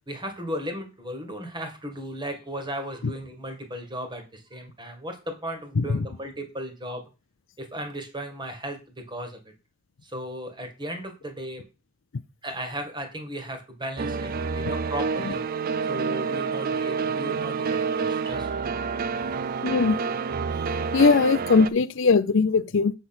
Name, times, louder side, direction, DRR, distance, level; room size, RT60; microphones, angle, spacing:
voice 1, 0.1-7.0 7.6-8.8 9.1-9.4 10.0-11.6 12.4-15.4 15.8-18.8 19.2-19.4 19.9-20.0, equal, 25° right, 1.8 m, -36 dB
sound 1, 14.0-21.7, right 5 dB, 45° right, 0.4 m, -28 dB
voice 2, 19.6-20.0 20.9-22.9, left 4 dB, 65° left, 0.5 m, -20 dB
7.8 x 4.1 x 6.0 m
head